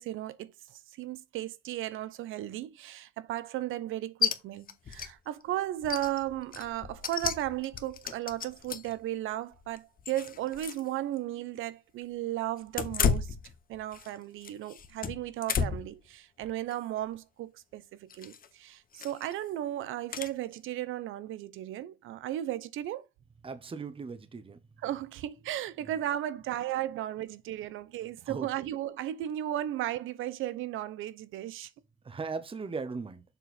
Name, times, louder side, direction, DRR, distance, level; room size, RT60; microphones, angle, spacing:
voice 1, 0.0-13.4 13.7-23.0 24.8-31.7, right 13 dB, 85° right, 0.8 m, -35 dB
sound 1, 4.2-4.4 4.7-5.1 5.4-5.5 5.8-9.0 9.5-10.9 11.2-11.3 12.7-14.1 14.4-16.0 16.4-16.7 18.1-18.5 19.0-19.3 20.1-20.3, left 6 dB, 45° left, 1.0 m, -33 dB
voice 2, 23.4-24.6 25.8-25.9 28.3-28.5 32.0-33.2, right 4 dB, 25° right, 0.9 m, -38 dB
7.0 x 4.0 x 4.2 m
cardioid pair, 90°, 20 cm